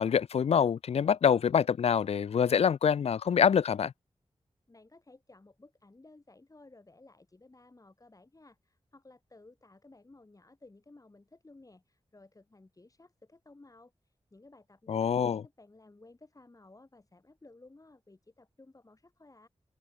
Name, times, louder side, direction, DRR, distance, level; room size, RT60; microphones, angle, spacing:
voice 1, 0.0-3.9 14.9-15.4, left 7 dB, 70° left, 0.4 m, -25 dB
voice 2, 4.7-19.5, left 2 dB, 30° left, 7.4 m, -57 dB
wide cardioid pair, 75°, 11 cm